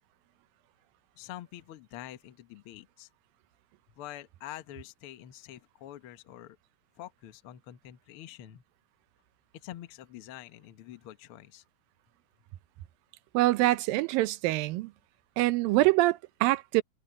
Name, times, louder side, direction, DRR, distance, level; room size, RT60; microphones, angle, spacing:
voice 1, 1.2-3.1 4.0-6.6 7.0-8.6 9.6-11.6, left 13 dB, 70° left, 1.3 m, -46 dB
voice 2, 13.3-14.9 15.4-16.8, right 18 dB, 80° right, 2.4 m, -25 dB
omnidirectional pair, 4.1 m